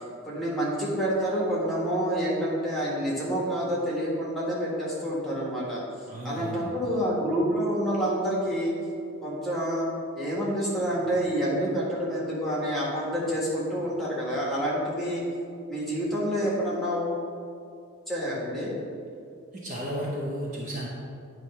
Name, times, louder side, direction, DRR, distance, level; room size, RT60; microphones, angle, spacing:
voice 1, 0.2-5.8 6.2-8.7 9.2-9.9 10.2-15.2 15.7-17.2 18.1-18.7, equal, ahead, -6 dB, 1.5 m, -28 dB
voice 2, 6.1-6.7 19.5-20.9, equal, 35° right, -4 dB, 0.8 m, -33 dB
9.1 x 3.2 x 5.6 m, 2.4 s
head